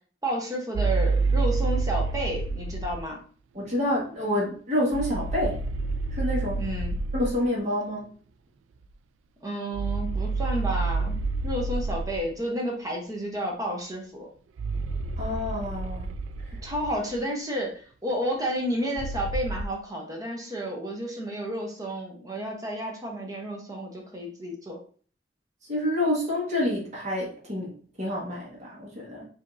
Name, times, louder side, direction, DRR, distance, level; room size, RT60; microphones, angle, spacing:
voice 1, 0.2-3.2 6.6-7.0 9.4-11.2 11.4-14.3 16.6-24.8, equal, 20° right, 0 dB, 0.8 m, -31 dB
sound 1, 0.7-3.1 4.9-7.4 9.7-12.3 14.6-17.2 19.0-19.6, right 3 dB, 85° right, 0.3 m, -28 dB
voice 2, 3.5-5.6 6.1-6.6 7.1-8.1 15.2-16.1 16.4-16.5 25.7-29.3, left 1 dB, 40° right, -5 dB, 1.4 m, -28 dB
5.0 x 2.8 x 2.6 m, 0.43 s
head